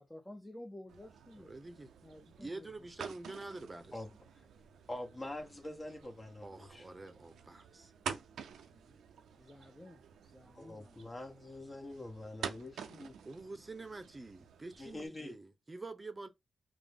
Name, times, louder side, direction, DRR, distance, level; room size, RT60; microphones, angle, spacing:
voice 1, 0.0-1.6 2.0-2.7 8.7-9.0 9.4-11.1, left 1 dB, 10° left, 0.6 m, -52 dB
sound 1, 0.9-15.1, right 7 dB, 85° right, 0.4 m, -49 dB
voice 2, 1.4-1.9 2.4-4.0 6.4-7.9 13.2-16.3, right 2 dB, 30° right, 0.7 m, -47 dB
voice 3, 3.9-4.5 4.9-6.9 10.5-13.1 14.8-15.4, left 1 dB, 35° left, 1.1 m, -45 dB
3.5 x 2.0 x 3.5 m
supercardioid pair, 50°, 0 cm